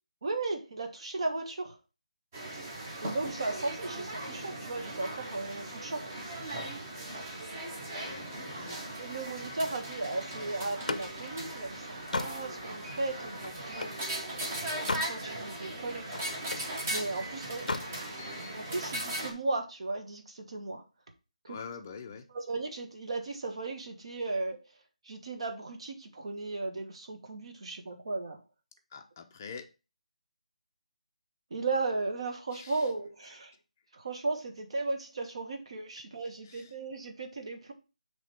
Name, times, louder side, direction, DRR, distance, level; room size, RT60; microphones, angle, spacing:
voice 1, 0.2-1.8 3.0-6.1 9.0-14.0 14.7-16.1 16.8-17.7 18.5-20.8 21.4-21.6 22.3-24.6 25.0-28.4 31.5-33.5 33.9-37.7, right 3 dB, 45° right, 1.4 m, -36 dB
sound 1, 2.3-19.3, right 1 dB, 20° right, 1.2 m, -38 dB
voice 2, 7.9-8.9 21.5-22.3 28.9-29.7 32.5-32.9 36.4-36.7, left 6 dB, 20° left, 0.6 m, -45 dB
Slam, 10.6-14.0 14.5-15.2 15.6-16.7 17.5-17.9, left 3 dB, 85° left, 0.6 m, -37 dB
7.4 x 3.3 x 4.3 m
hypercardioid pair, 175°, 4 cm